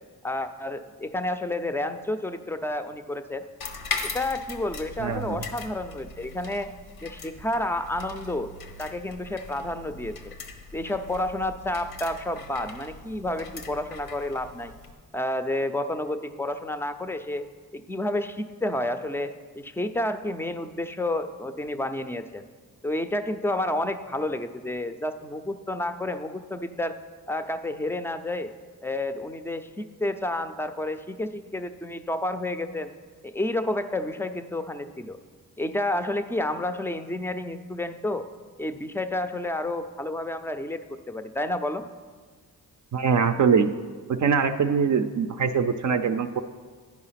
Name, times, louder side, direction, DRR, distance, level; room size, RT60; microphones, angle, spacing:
voice 1, 0.2-3.4 4.0-6.7 7.0-8.5 8.8-10.3 10.7-14.7 15.1-17.5 17.7-22.5 22.8-27.0 27.3-28.5 28.8-32.9 33.2-35.2 35.6-38.2 38.6-41.8, left 1 dB, 5° left, 10 dB, 0.4 m, -30 dB
swaying spring, 3.6-14.9, left 4 dB, 85° left, 1.0 m, -40 dB
voice 2, 5.0-5.4 42.9-43.7 44.1-46.4, right 6 dB, 50° right, 7 dB, 0.5 m, -23 dB
10.5 x 4.8 x 5.7 m, 1.5 s
cardioid pair, 80°, 37 cm